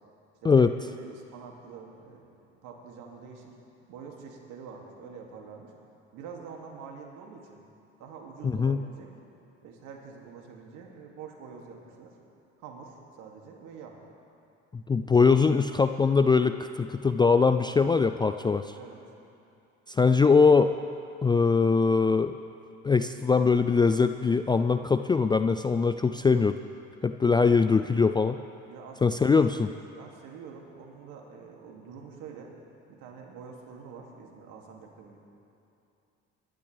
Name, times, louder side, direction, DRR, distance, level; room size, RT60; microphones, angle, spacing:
voice 1, 0.4-3.5 3.9-5.7 6.1-7.6 8.0-9.1 9.6-12.1 12.6-14.0 18.7-19.0 28.7-32.5 32.9-35.2, right 6 dB, 65° right, 0 dB, 2.5 m, -46 dB
voice 2, 8.4-8.8 14.7-18.6 19.9-20.7 21.2-22.3 22.8-26.6 27.0-28.4 29.0-29.7, left 5 dB, 15° left, 9 dB, 0.3 m, -22 dB
23.0 x 12.0 x 3.4 m, 2.7 s
hypercardioid pair, 70°, 34 cm